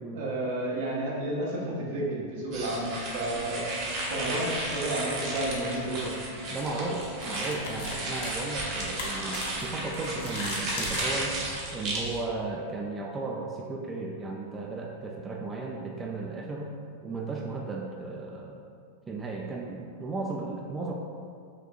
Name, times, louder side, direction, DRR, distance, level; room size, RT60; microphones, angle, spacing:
voice 1, 0.1-3.7 4.1-6.2, right 1 dB, 70° right, -4 dB, 0.9 m, -31 dB
sound 1, 2.5-12.2, right 2 dB, 50° right, 0.9 m, -34 dB
sound 2, 3.3-10.2, left 3 dB, 50° left, 0.9 m, -46 dB
sound 3, 4.5-4.6 6.1-6.3 6.6-6.7 7.2-11.0, left 3 dB, 80° left, 0.7 m, -38 dB
voice 2, 6.5-11.4 11.7-16.7 17.0-18.6 19.1-20.9, right 3 dB, 20° right, -1 dB, 0.4 m, -35 dB
5.0 x 2.6 x 2.4 m, 2.2 s
hypercardioid pair, 115°, 0 cm